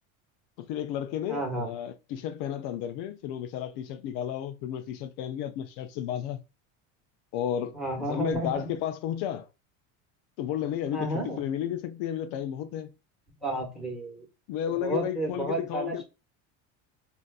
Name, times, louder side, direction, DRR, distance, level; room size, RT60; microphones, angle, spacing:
voice 1, 0.6-6.4 7.3-9.5 10.4-12.9 14.5-16.0, left 10 dB, 70° left, 0.5 m, -32 dB
voice 2, 1.3-1.7 7.7-8.7 10.9-11.4 13.4-14.2 14.8-16.0, right 1 dB, ahead, 1.3 m, -32 dB
3.8 x 2.5 x 2.3 m
supercardioid pair, 115°, 38 cm